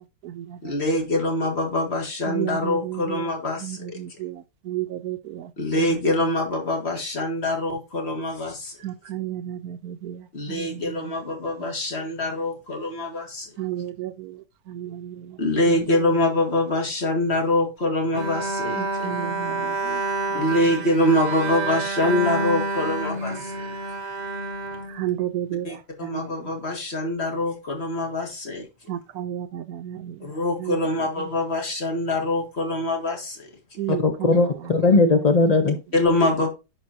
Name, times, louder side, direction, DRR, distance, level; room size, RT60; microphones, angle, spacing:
voice 1, 0.6-4.0 5.6-8.8 10.3-13.5 15.4-19.1 20.3-23.7 25.6-28.7 30.2-33.5 35.9-36.5, left 1 dB, 40° left, 2.0 m, -24 dB
voice 2, 4.0-4.3 4.7-5.2 8.8-10.2 13.6-14.1 14.7-15.1 19.0-19.6 25.0-25.7 28.9-30.1 33.8-34.0, right 12 dB, 70° right, 1.0 m, -30 dB
Bowed string instrument, 18.1-25.5, right 2 dB, 45° right, 0.5 m, -28 dB
voice 3, 33.9-35.8, left 3 dB, 75° left, 0.3 m, -18 dB
10.5 x 5.1 x 2.8 m
omnidirectional pair, 1.8 m